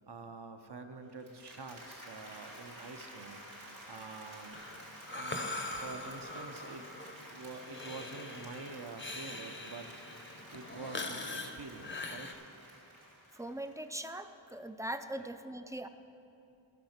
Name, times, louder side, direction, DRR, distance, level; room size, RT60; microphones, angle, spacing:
voice 1, 0.0-3.4 3.9-4.6 5.1-6.9 7.3-9.9 10.2-12.4 15.1-15.3, right 3 dB, 60° right, 7 dB, 0.8 m, -47 dB
Applause, 1.1-14.1, equal, 75° right, 2.7 m, -52 dB
Breathing, 4.5-12.3, left 2 dB, 25° left, 0.7 m, -42 dB
voice 2, 13.3-15.9, right 1 dB, 5° right, 9 dB, 0.4 m, -41 dB
13.5 x 6.4 x 5.9 m, 2.7 s
wide cardioid pair, 50°, 47 cm